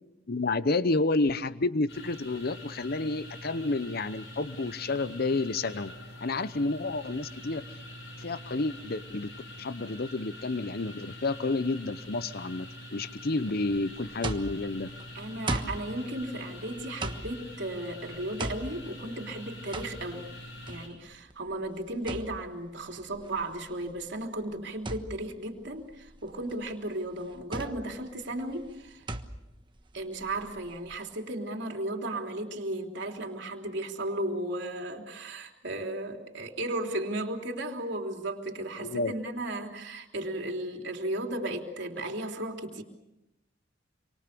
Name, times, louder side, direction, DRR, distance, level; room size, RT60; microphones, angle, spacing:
voice 1, 0.3-5.9 6.2-7.6 8.2-9.3 9.6-12.7 12.9-14.9 38.8-39.1, left 3 dB, 55° left, 14 dB, 0.8 m, -30 dB
sound 1, 1.9-20.9, left 1 dB, 70° left, 7.3 m, -45 dB
sound 2, 13.7-31.0, right 2 dB, 25° right, 1.3 m, -40 dB
voice 2, 15.1-20.3 20.7-29.0 29.9-42.8, right 1 dB, 65° right, 2 dB, 3.4 m, -35 dB
27.5 x 25.0 x 6.8 m, 0.90 s
head